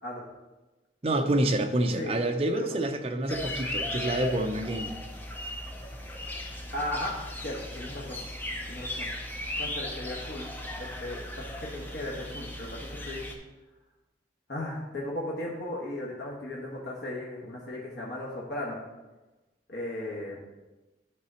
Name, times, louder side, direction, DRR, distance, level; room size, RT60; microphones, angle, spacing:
voice 1, 1.0-4.9, right 1 dB, 30° right, 5 dB, 0.6 m, -27 dB
sound 1, 3.3-13.3, left 1 dB, 10° left, 0.6 m, -37 dB
voice 2, 6.7-7.1 7.4-8.2 8.7-9.1 9.6-10.5 10.8-11.2 11.5-13.3 14.5-18.8 19.7-20.3, left 1 dB, 65° left, -4 dB, 1.3 m, -36 dB
11.0 x 4.0 x 4.3 m, 1.1 s
head